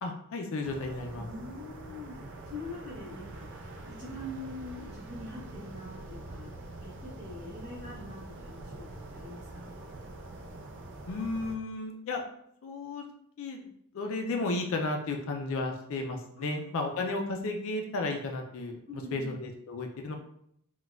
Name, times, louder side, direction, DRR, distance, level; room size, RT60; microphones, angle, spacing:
voice 1, 0.0-1.2 11.1-12.2 12.6-13.0 13.4-13.7 13.9-18.8 19.1-20.1, left 2 dB, 65° left, 3 dB, 0.4 m, -33 dB
sound 1, 0.6-11.6, right 2 dB, 55° right, 0.4 m, -45 dB
voice 2, 1.2-2.2 2.4-6.5 6.8-9.7 16.4-17.0 18.9-19.3, left 1 dB, 35° right, -11 dB, 0.9 m, -44 dB
4.0 x 2.2 x 2.3 m, 0.71 s
head